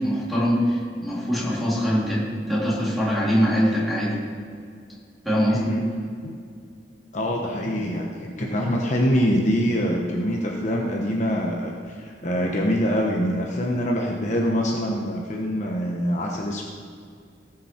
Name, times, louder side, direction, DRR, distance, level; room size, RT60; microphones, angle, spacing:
voice 1, 0.0-4.2 5.2-5.7, equal, ahead, -8 dB, 3.0 m, -23 dB
voice 2, 5.5-5.8 6.2-6.3 7.1-16.6, equal, 40° left, 0 dB, 1.0 m, -24 dB
18.0 x 6.1 x 4.5 m, 2.2 s
head